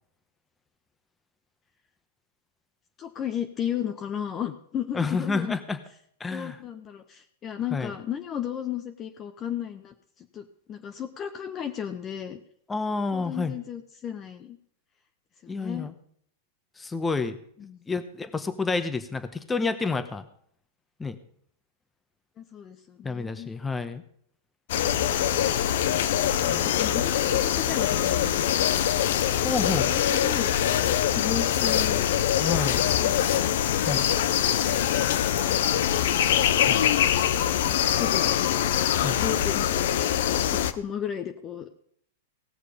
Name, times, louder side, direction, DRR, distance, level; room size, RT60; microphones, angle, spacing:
voice 1, 3.0-5.6 6.3-12.4 13.1-14.6 15.4-15.9 17.6-17.9 22.4-23.5 26.4-28.5 29.6-32.0 33.0-33.2 37.2-38.3 39.1-39.8 40.5-41.8, left 9 dB, 30° left, 7 dB, 0.8 m, -35 dB
voice 2, 4.9-5.8 6.2-6.6 7.7-7.9 12.7-13.5 15.5-15.9 16.8-17.4 17.9-20.3 21.0-21.2 23.0-24.0 26.5-26.7 29.4-29.9 32.4-32.8 33.9-34.0 36.6-36.9 39.0-39.2, left 4 dB, 10° left, 10 dB, 1.0 m, -29 dB
sound 1, 24.7-40.7, left 10 dB, 65° left, 0.7 m, -23 dB
18.0 x 6.5 x 5.1 m, 0.65 s
hypercardioid pair, 120°, 0 cm